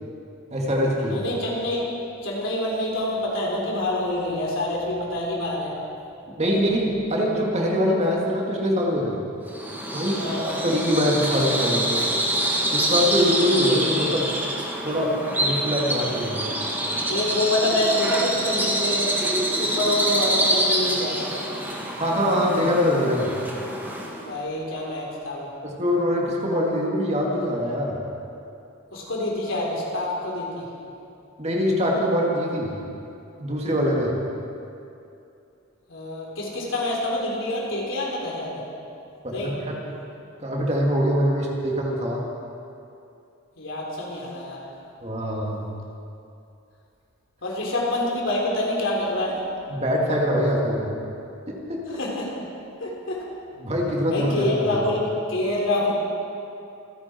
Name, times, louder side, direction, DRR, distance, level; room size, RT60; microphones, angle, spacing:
voice 1, 0.5-1.2 6.4-9.2 9.9-12.0 12.7-14.3 14.8-15.1 15.4-16.4 22.0-23.3 25.6-28.0 31.4-32.8 33.4-34.1 39.2-39.7 40.4-42.2 45.0-45.6 49.7-50.9 51.5-51.8 53.6-54.8, equal, 30° right, -2 dB, 2.4 m, -23 dB
voice 2, 1.1-1.9 2.2-5.7 10.2-10.5 17.1-19.1 19.5-21.3 24.3-25.5 28.9-30.7 35.9-38.6 39.3-39.6 43.6-44.7 47.4-49.4 51.9-52.3 52.8-53.2 54.1-55.9, left 1 dB, 65° left, -3 dB, 3.8 m, -26 dB
Bird vocalization bird call bird song, 9.5-24.3, right 1 dB, 10° right, 1.7 m, -26 dB
27.0 x 11.0 x 4.5 m, 2.7 s
head